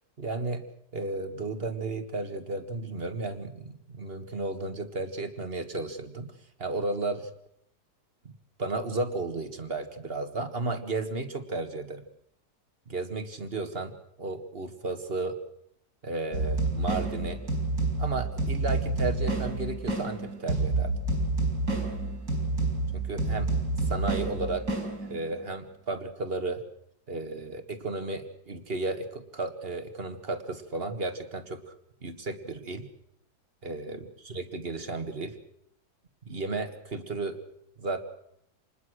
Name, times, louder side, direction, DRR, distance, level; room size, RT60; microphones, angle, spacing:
voice 1, 0.2-0.6 0.9-6.3 6.6-7.3 8.6-12.0 12.9-15.4 16.0-17.4 18.0-20.9 22.9-23.5 23.9-24.7 25.1-26.6 27.1-31.7 32.0-32.9 33.6-35.4 36.3-37.4 37.8-38.0, right 3 dB, 35° right, 9 dB, 1.9 m, -33 dB
sound 1, 16.3-25.4, right 2 dB, 70° right, 5.1 m, -29 dB
27.0 x 20.5 x 6.4 m, 0.71 s
omnidirectional pair, 1.8 m